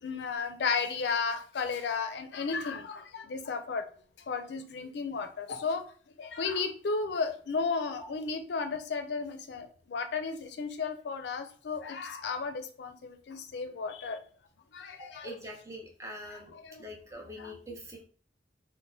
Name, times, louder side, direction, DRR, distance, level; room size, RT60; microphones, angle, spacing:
voice 1, 0.0-3.9 4.3-5.8 6.2-14.2 14.7-15.3 16.3-16.9 17.4-17.6, left 4 dB, 80° left, 7 dB, 0.4 m, -34 dB
voice 2, 15.0-18.0, equal, 15° right, 1 dB, 0.5 m, -44 dB
3.8 x 2.1 x 2.6 m, 0.43 s
head